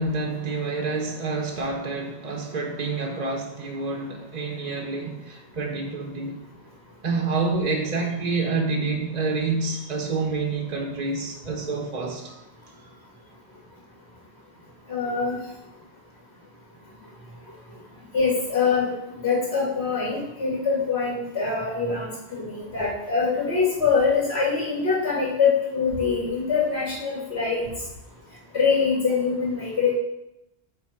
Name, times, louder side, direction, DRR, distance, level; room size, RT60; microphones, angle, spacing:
voice 1, 0.0-6.4 7.0-12.3, right 3 dB, 40° right, 1.1 m, -28 dB
voice 2, 14.9-15.3 18.1-18.9 19.2-27.7 28.5-29.9, left 5 dB, 85° left, 2.5 m, -24 dB
9.5 x 3.7 x 5.8 m
omnidirectional pair, 1.1 m